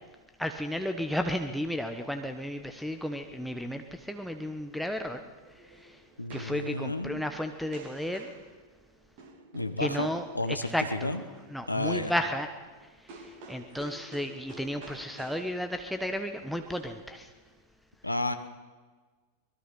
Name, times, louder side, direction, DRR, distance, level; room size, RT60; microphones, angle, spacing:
voice 1, 0.4-5.2 5.7-6.0 6.3-8.3 9.8-10.3 10.7-11.1 11.5-12.5 13.0-17.3, equal, ahead, 5 dB, 1.3 m, -33 dB
sound 1, 5.1-17.6, right 2 dB, 50° right, 3.0 m, -51 dB
voice 2, 6.2-7.2 9.5-10.1 10.3-11.2 11.7-12.1 18.0-18.3, left 2 dB, 85° left, 10 dB, 1.3 m, -31 dB
24.0 x 20.5 x 5.8 m, 1.4 s
figure-of-eight pair, 90°, 0 cm